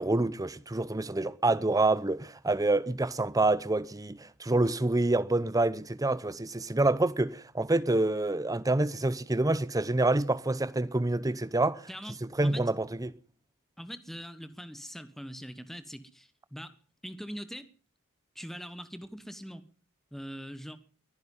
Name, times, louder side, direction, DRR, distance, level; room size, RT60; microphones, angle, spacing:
voice 1, 0.0-11.8 12.4-13.1, right 2 dB, 15° right, 0.7 m, -27 dB
voice 2, 11.9-12.7 13.8-16.7 17.0-17.7 18.3-19.6 20.1-20.8, equal, ahead, 1.3 m, -42 dB
22.5 x 10.5 x 5.5 m
head